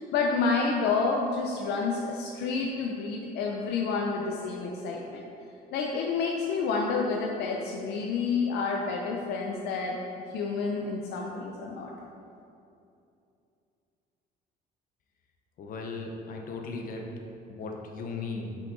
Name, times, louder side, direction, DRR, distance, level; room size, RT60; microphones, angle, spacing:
voice 1, 0.0-5.3 5.7-10.0 10.3-11.9, left 4 dB, 80° left, 0 dB, 0.6 m, -29 dB
voice 2, 15.6-17.1 17.5-18.6, left 3 dB, 55° left, 2 dB, 0.9 m, -37 dB
5.9 x 5.7 x 3.9 m, 2.6 s
cardioid pair, 110°, 17 cm